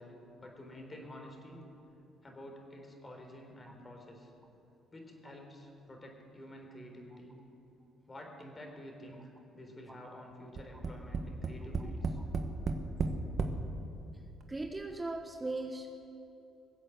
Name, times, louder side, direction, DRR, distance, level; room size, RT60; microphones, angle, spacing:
voice 1, 0.0-1.7 2.2-4.3 4.9-7.3 8.1-12.2, left 1 dB, 30° left, 2 dB, 3.8 m, -49 dB
Tap, 10.6-13.6 14.4-14.5 14.8-14.9, right 4 dB, 45° right, 1.5 m, -33 dB
voice 2, 14.5-15.9, right 2 dB, 20° right, 5 dB, 1.2 m, -38 dB
21.0 x 8.2 x 8.0 m, 2.9 s
supercardioid pair, 65°, 0 cm